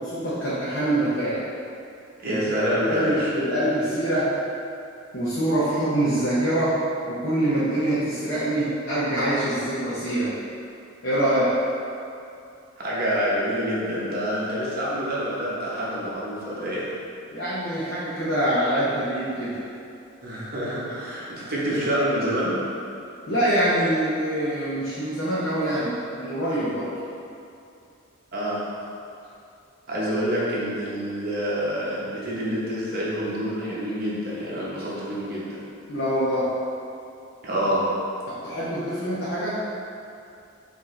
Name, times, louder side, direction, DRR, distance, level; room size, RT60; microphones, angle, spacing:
voice 1, 0.0-1.4 2.3-2.4 2.9-4.4 5.1-10.3 11.0-11.7 17.3-19.6 23.3-26.9 35.9-36.5 38.3-39.7, right 1 dB, 55° left, -9 dB, 0.6 m, -25 dB
voice 2, 2.2-3.3 12.8-16.9 20.2-22.6 28.3-28.6 29.9-35.6 37.4-37.9, equal, 45° right, -7 dB, 0.9 m, -27 dB
4.6 x 2.7 x 3.1 m, 2.6 s
head